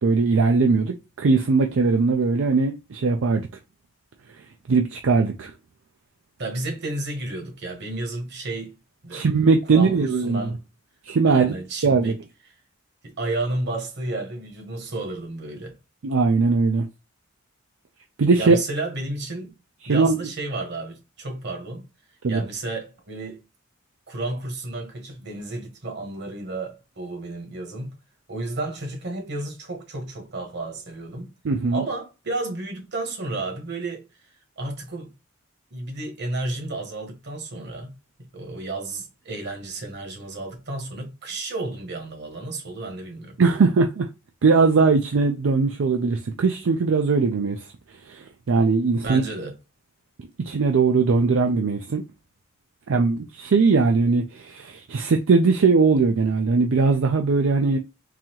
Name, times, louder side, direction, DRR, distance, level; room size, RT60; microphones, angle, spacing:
voice 1, 0.0-3.5 4.7-5.5 9.1-10.4 11.0-11.6 11.8-12.1 16.0-16.9 18.2-18.6 19.8-20.2 22.2-22.4 31.4-31.8 43.4-44.1 44.4-47.7 48.1-49.3 50.4-52.0 52.9-57.8, right 4 dB, 70° right, 0.4 m, -20 dB
voice 2, 6.4-8.8 9.0-9.3 9.7-10.6 11.3-12.2 13.0-15.8 18.4-19.6 19.8-21.8 22.3-23.4 24.1-27.9 28.3-31.3 31.7-34.0 34.6-35.1 35.7-37.9 38.2-43.4 49.0-49.5, right 2 dB, 55° right, 1.3 m, -32 dB
3.9 x 2.8 x 2.9 m
head